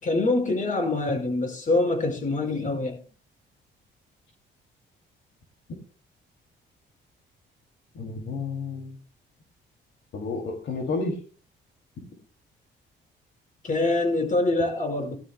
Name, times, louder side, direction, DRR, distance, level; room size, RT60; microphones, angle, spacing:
voice 1, 0.0-3.0 13.6-15.2, left 2 dB, 40° left, 5.1 m, -25 dB
voice 2, 7.9-9.0 10.1-11.2, left 3 dB, 70° left, 2.7 m, -31 dB
19.5 x 12.5 x 2.2 m
cardioid pair, 90°, 20 cm